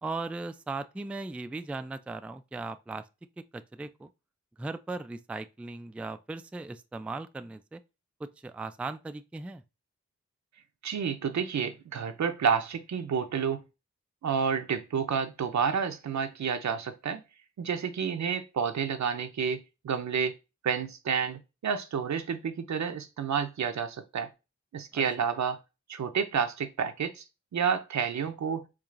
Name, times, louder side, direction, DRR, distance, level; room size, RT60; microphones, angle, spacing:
voice 1, 0.0-3.1 3.5-4.1 4.6-7.8 8.2-9.6 24.9-25.0, right 3 dB, 5° right, 0.3 m, -38 dB
voice 2, 10.8-13.6 14.2-17.2 17.6-20.3 20.6-24.3 24.7-25.6 25.9-27.2 27.5-28.6, right 6 dB, 70° right, 0.7 m, -30 dB
4.7 x 2.5 x 2.5 m
cardioid pair, 40°, 29 cm